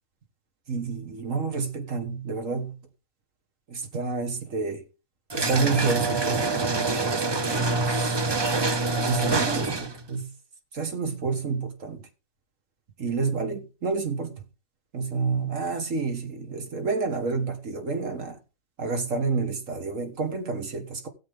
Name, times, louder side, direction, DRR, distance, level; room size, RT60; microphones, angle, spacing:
voice 1, 0.7-2.8 3.7-4.8 5.3-8.2 9.0-10.3 10.7-12.0 13.0-14.4 14.9-18.4 18.8-21.1, right 4 dB, 65° right, 2.0 m, -29 dB
sound 1, 5.3-10.0, right 3 dB, 25° right, 0.6 m, -26 dB
17.0 x 7.5 x 3.7 m
omnidirectional pair, 1.4 m